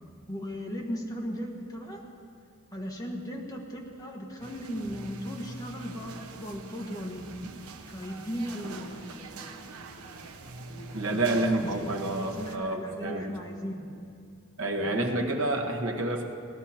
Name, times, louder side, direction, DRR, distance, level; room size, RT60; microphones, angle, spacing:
voice 1, 0.3-2.0 2.7-7.4 7.9-10.2 10.7-14.0 14.8-15.1, equal, 15° left, 0 dB, 1.4 m, -37 dB
sound 1, 4.4-12.6, right 3 dB, 80° right, 0.9 m, -44 dB
voice 2, 10.9-13.2 14.6-16.2, right 2 dB, 65° right, 1 dB, 1.5 m, -29 dB
17.0 x 12.0 x 4.4 m, 2.5 s
head